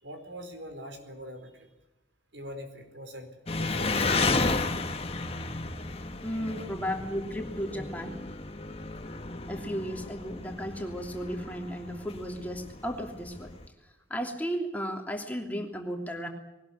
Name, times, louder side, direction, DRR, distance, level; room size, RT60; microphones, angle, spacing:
voice 1, 0.0-1.7 2.3-3.3 3.6-4.6 6.5-6.8, equal, 75° right, 7 dB, 4.6 m, -43 dB
Engine, 3.5-13.6, left 3 dB, 30° left, 1.6 m, -33 dB
voice 2, 6.2-8.2 9.5-13.5 14.1-16.3, equal, 10° left, 2 dB, 3.0 m, -34 dB
21.0 x 19.0 x 9.5 m, 0.97 s
head